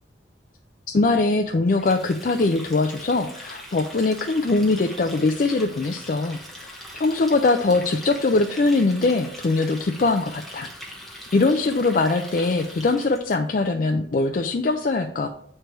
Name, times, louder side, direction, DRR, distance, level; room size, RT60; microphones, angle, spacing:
voice 1, 0.9-10.7 11.3-15.3, left 3 dB, 45° left, 5 dB, 0.4 m, -22 dB
Water tap faucet, 1.7-13.3, equal, ahead, 1.1 m, -41 dB
9.0 x 3.3 x 4.5 m, 0.66 s
head